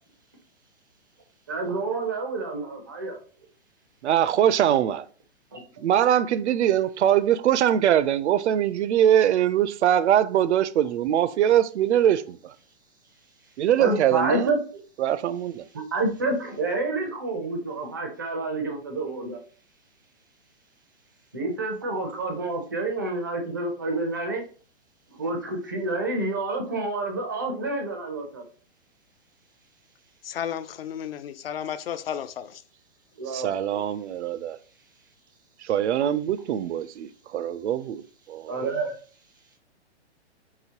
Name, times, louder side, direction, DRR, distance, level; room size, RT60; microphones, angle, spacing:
voice 1, 1.5-3.2 5.5-5.6 13.8-14.6 15.7-19.4 21.3-24.4 25.2-28.4 33.2-33.8 38.5-38.9, right 2 dB, 20° right, 0.4 m, -28 dB
voice 2, 4.0-5.0 5.8-12.5 13.6-14.6 15.0-15.7 33.3-34.6 35.6-38.0 38.3-38.7, right 10 dB, 75° right, 0.5 m, -22 dB
voice 3, 30.2-32.6, left 9 dB, 60° left, 0.5 m, -33 dB
4.9 x 3.1 x 2.8 m
hypercardioid pair, 165°, 34 cm